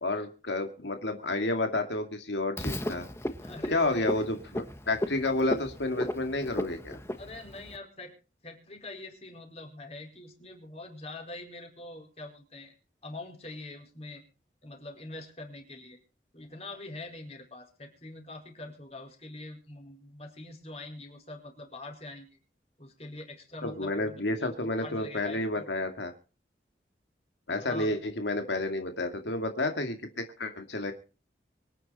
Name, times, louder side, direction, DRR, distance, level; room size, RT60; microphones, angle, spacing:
voice 1, 0.0-3.1 3.7-7.0 23.6-26.1 27.5-30.9, left 2 dB, 90° left, 5 dB, 2.2 m, -30 dB
Frog, 2.6-7.8, left 1 dB, 15° left, 1.3 m, -35 dB
voice 2, 3.4-4.2 5.2-5.3 7.1-8.1 8.4-12.7 13.0-14.2 14.6-16.0 16.3-22.4 22.8-25.7 27.6-27.9, left 2 dB, 35° left, 3 dB, 4.8 m, -44 dB
24.5 x 9.6 x 4.2 m, 0.35 s
head